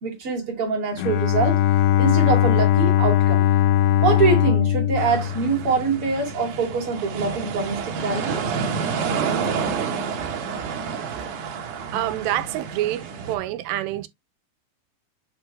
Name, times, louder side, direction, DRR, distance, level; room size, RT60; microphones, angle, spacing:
voice 1, 0.0-1.6 2.0-3.5 4.0-8.4, right 5 dB, 40° right, 2.2 m, -24 dB
Bowed string instrument, 1.0-6.2, left 12 dB, 85° left, 2.7 m, -20 dB
sound 1, 5.0-13.4, right 6 dB, 60° right, 2.3 m, -29 dB
voice 2, 11.9-14.1, right 14 dB, 85° right, 2.8 m, -27 dB
8.0 x 4.4 x 3.2 m
omnidirectional pair, 5.0 m